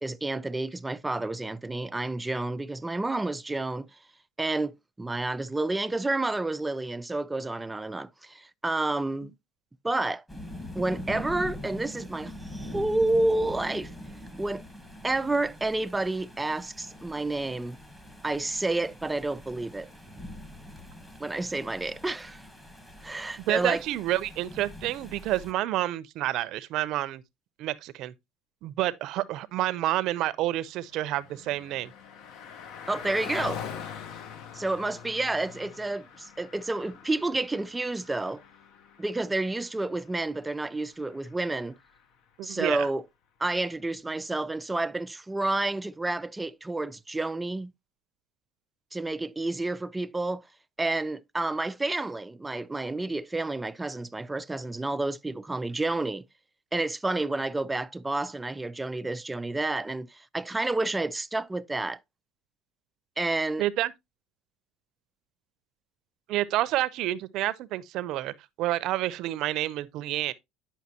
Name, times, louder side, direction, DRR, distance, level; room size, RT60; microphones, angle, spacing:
voice 1, 0.0-3.9 4.4-9.3 9.8-10.2 10.8-13.9 14.4-14.6 15.0-17.8 18.2-19.9 21.2-22.4 23.0-23.8 32.9-33.6 34.5-38.4 39.0-41.8 42.4-43.0 43.4-47.7 48.9-50.4 50.8-56.2 56.7-62.0 63.2-63.6, right 2 dB, 10° right, 0.3 m, -30 dB
sound 1, 10.3-25.5, left 1 dB, 10° left, 1.4 m, -43 dB
voice 2, 23.5-27.2 27.6-28.1 28.6-31.9 42.4-42.9 63.6-63.9 66.3-70.3, right 15 dB, 60° right, 0.6 m, -29 dB
Car passing by, 30.4-42.2, left 7 dB, 60° left, 1.0 m, -44 dB
9.4 x 5.7 x 2.8 m
cardioid pair, 135°, 0 cm